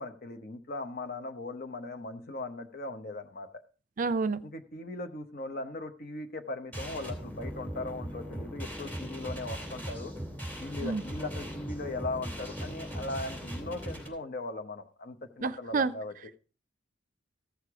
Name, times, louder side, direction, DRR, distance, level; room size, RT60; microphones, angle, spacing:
voice 1, 0.0-3.6 4.4-10.1 10.6-16.1, left 2 dB, 50° left, 1.1 m, -39 dB
voice 2, 4.0-4.4 10.8-11.0 15.4-15.9, right 4 dB, 45° right, 0.5 m, -29 dB
sound 1, 6.7-14.1, equal, 10° left, 2.7 m, -39 dB
14.5 x 6.6 x 4.9 m
head